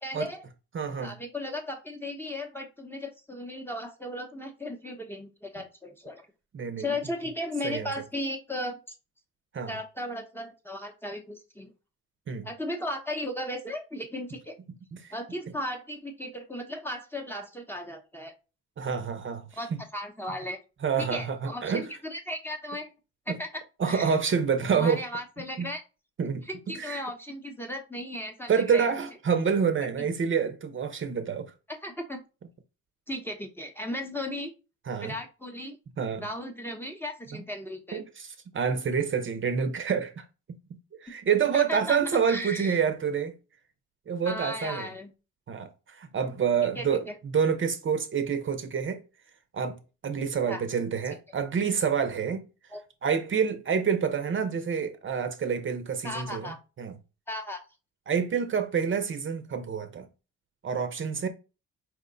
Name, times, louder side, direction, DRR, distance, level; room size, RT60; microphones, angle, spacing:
voice 1, 0.0-0.5 1.0-6.3 6.8-8.8 9.7-11.7 12.4-14.5 15.1-18.3 19.6-20.6 21.1-22.9 23.3-23.6 23.9-24.2 24.7-25.8 26.5-28.9 30.0-30.1 31.7-32.2 33.1-34.5 35.0-35.8 36.2-38.0 41.5-42.0 42.3-42.8 44.3-45.1 46.8-46.9 50.5-50.6 52.7-52.8 56.0-56.6 57.3-57.6, left 1 dB, 5° left, 0.7 m, -36 dB
voice 2, 0.7-1.1 6.5-6.9 7.6-7.9 9.5-9.7 12.3-12.5 14.9-15.1 18.8-19.8 20.8-21.8 23.3-23.4 23.8-25.0 25.6-25.7 26.2-27.0 28.5-31.5 34.9-35.1 36.0-36.3 37.3-37.4 37.9-40.2 41.0-43.3 44.1-44.9 45.5-49.0 49.5-52.4 53.0-57.0 58.1-60.1 60.6-61.3, right 6 dB, 40° right, 0.7 m, -28 dB
4.5 x 2.2 x 3.8 m
cardioid pair, 90°, 30 cm